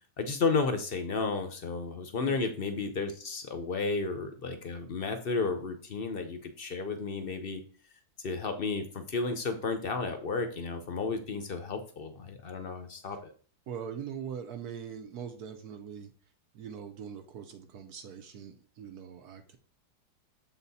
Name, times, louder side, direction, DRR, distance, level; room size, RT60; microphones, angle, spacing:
voice 1, 0.2-7.6 8.2-13.2, left 4 dB, 50° left, 7 dB, 0.7 m, -32 dB
voice 2, 13.7-16.1 16.5-19.6, right 7 dB, 70° right, 6 dB, 1.2 m, -42 dB
7.3 x 4.1 x 4.1 m, 0.42 s
omnidirectional pair, 1.8 m